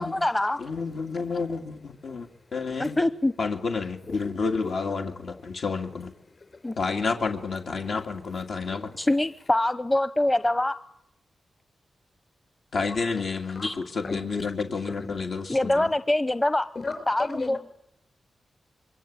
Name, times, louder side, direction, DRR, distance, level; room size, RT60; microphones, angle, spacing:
voice 1, 0.0-0.6 2.8-3.3 6.6-6.8 9.0-10.8 13.6-13.7 15.5-16.7 17.1-17.6, left 1 dB, 20° left, 1.0 m, -24 dB
voice 2, 0.6-3.0 3.4-6.1 6.8-9.0 12.7-15.9, left 4 dB, 75° left, 2.5 m, -30 dB
voice 3, 2.1-2.4 2.8-2.9 5.5-6.8 9.0-9.1 13.5-13.7 14.0-14.2 15.0-15.2 16.7-17.6, left 3 dB, 50° left, 5.3 m, -37 dB
26.0 x 23.0 x 8.9 m
cardioid pair, 75°, 0 cm